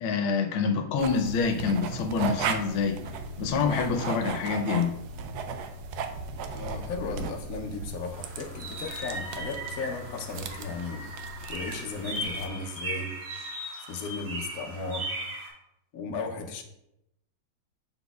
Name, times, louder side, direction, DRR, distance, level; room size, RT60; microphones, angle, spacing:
voice 1, 0.0-3.0 3.4-4.9, left 5 dB, 80° left, 5 dB, 1.5 m, -26 dB
sound 1, 1.0-12.5, right 4 dB, 85° right, 0.8 m, -36 dB
voice 2, 6.5-11.1 11.5-13.2 13.9-15.1 15.9-16.6, left 3 dB, 65° left, 3 dB, 0.9 m, -35 dB
sound 2, 8.1-15.5, right 1 dB, 60° right, 2.1 m, -38 dB
6.7 x 6.2 x 2.3 m, 0.84 s
omnidirectional pair, 2.3 m